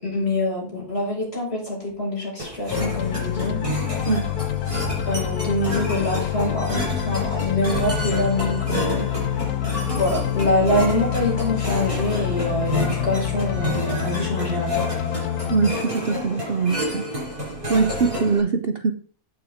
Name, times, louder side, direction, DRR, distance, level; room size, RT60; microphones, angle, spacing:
voice 1, 0.0-3.6 5.1-9.1 9.9-14.8, left 1 dB, 45° left, -3 dB, 6.1 m, -25 dB
sound 1, 2.4-18.4, equal, 20° right, 6.6 m, -30 dB
sound 2, 2.7-17.4, left 12 dB, 85° left, 1.2 m, -27 dB
voice 2, 15.5-17.1 17.7-18.9, right 4 dB, 50° right, 8 dB, 0.9 m, -22 dB
9.8 x 8.9 x 5.0 m, 0.42 s
omnidirectional pair, 1.5 m